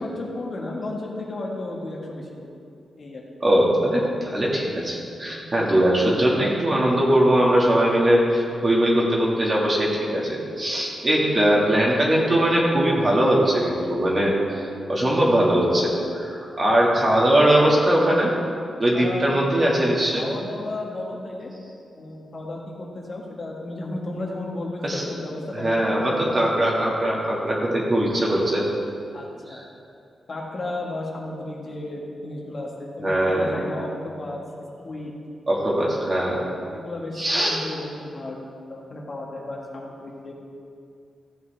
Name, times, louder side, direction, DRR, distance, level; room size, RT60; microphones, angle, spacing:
voice 1, 0.0-2.3 3.0-3.2 18.9-19.5 20.2-21.5 21.9-26.3 29.1-29.6 30.3-34.5 34.8-35.1 36.7-38.4 38.7-40.3, left 2 dB, 45° left, -2 dB, 1.5 m, -33 dB
voice 2, 3.4-14.6 14.9-18.3 18.8-20.3 24.8-25.0 25.5-28.7 29.5-29.6 33.0-33.5 35.5-36.4 37.2-37.6, right 1 dB, 30° right, -4 dB, 1.9 m, -21 dB
14.5 x 7.5 x 3.4 m, 2.5 s
wide cardioid pair, 125°, 0 cm